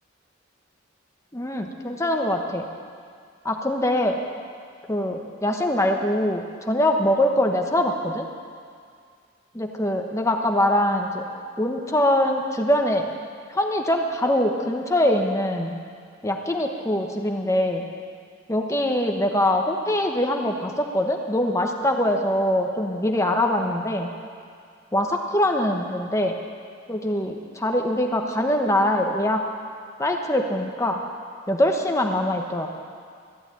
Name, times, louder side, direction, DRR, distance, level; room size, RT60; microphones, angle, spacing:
voice 1, 1.3-2.6 3.4-4.2 4.9-8.3 9.6-11.2 11.6-13.1 13.5-15.7 16.2-17.9 18.5-24.1 24.9-26.4 26.9-29.4 30.0-31.0 31.5-32.7, left 1 dB, 15° left, 3 dB, 1.0 m, -23 dB
14.0 x 9.0 x 9.1 m, 2.2 s
head